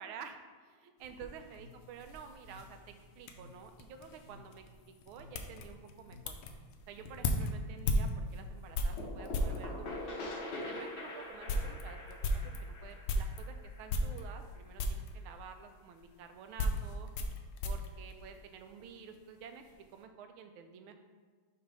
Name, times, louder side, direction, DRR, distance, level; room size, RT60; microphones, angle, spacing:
voice 1, 0.0-6.4 6.9-10.0 10.6-17.1 17.6-19.6 19.9-21.0, right 7 dB, 80° right, 6 dB, 1.4 m, -50 dB
sound 1, 1.0-9.7 10.4-10.5 10.9-11.0 11.3-13.5 13.9-14.5 14.8-15.1 16.0-18.9 19.2-19.7, left 1 dB, 75° left, 1.4 m, -36 dB
sound 2, 1.5-9.3, left 3 dB, 35° left, 1.4 m, -58 dB
sound 3, 9.0-14.6, left 2 dB, 55° left, 1.7 m, -43 dB
6.0 x 3.2 x 5.3 m, 1.5 s
omnidirectional pair, 2.4 m